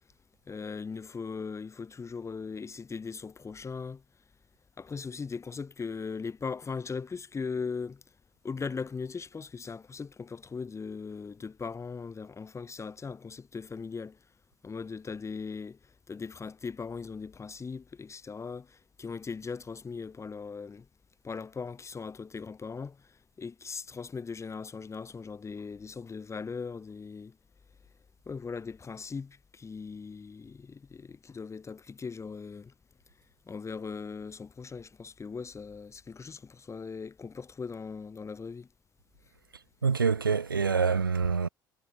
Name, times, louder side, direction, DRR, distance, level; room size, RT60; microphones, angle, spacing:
voice 1, 0.5-4.0 4.8-8.0 8.4-14.2 14.6-15.8 16.1-20.9 21.2-27.4 28.3-32.7 33.5-38.7, left 5 dB, 25° left, 3.6 m, -39 dB
voice 2, 39.8-41.5, right 5 dB, 85° right, 0.4 m, -26 dB
figure-of-eight pair, 55°, 11 cm